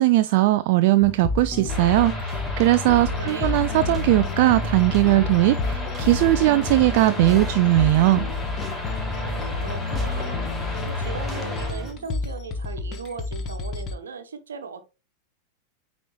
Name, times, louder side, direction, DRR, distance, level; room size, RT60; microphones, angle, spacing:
voice 1, 0.0-8.3, right 17 dB, 50° right, 0.3 m, -19 dB
sound 1, 1.0-14.0, left 3 dB, 35° left, 1.2 m, -29 dB
sound 2, 1.6-1.8 2.3-2.8 3.1-4.5 4.8-11.9, equal, 10° right, 2.4 m, -39 dB
sound 3, 1.7-11.7, left 1 dB, 15° left, 3.0 m, -35 dB
voice 2, 3.1-3.7 9.1-10.5 10.8-14.8, right 5 dB, 70° right, 1.1 m, -38 dB
9.0 x 4.1 x 3.0 m
figure-of-eight pair, 90°, 0 cm